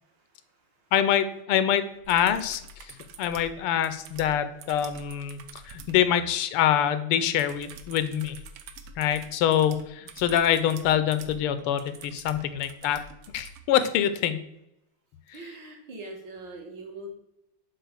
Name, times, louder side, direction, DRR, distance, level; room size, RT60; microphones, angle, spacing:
voice 1, 0.0-0.9 2.9-3.3 5.4-5.5 15.3-17.1, right 2 dB, 60° right, 1 dB, 2.0 m, -44 dB
voice 2, 0.9-8.4 9.0-13.0 13.3-14.4, left 10 dB, 85° left, 11 dB, 1.6 m, -25 dB
sound 1, 2.0-6.0 7.4-13.6 15.3-15.4, right 5 dB, 80° right, 1.6 m, -47 dB
6.7 x 4.1 x 6.5 m, 0.84 s
omnidirectional pair, 2.4 m